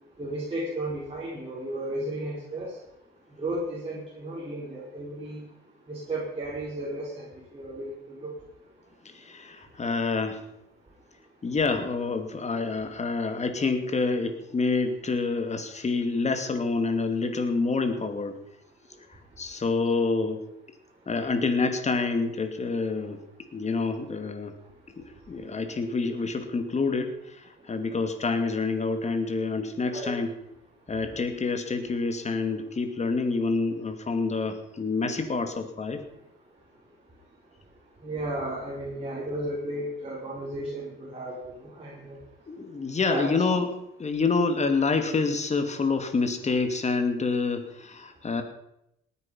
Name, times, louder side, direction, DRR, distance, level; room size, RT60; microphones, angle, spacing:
voice 1, 0.2-2.7 3.4-5.4 5.9-7.3 7.5-8.3 29.9-30.1 38.0-42.2 43.0-43.4, right 1 dB, 30° right, -6 dB, 4.5 m, -34 dB
voice 2, 9.1-10.4 11.4-18.4 19.4-20.4 21.1-23.2 23.5-24.5 25.0-27.4 27.7-30.3 30.9-36.0 42.5-43.7 44.0-48.4, left 4 dB, 35° left, 8 dB, 2.4 m, -27 dB
18.5 x 9.7 x 5.6 m, 0.81 s
cardioid pair, 90°, 20 cm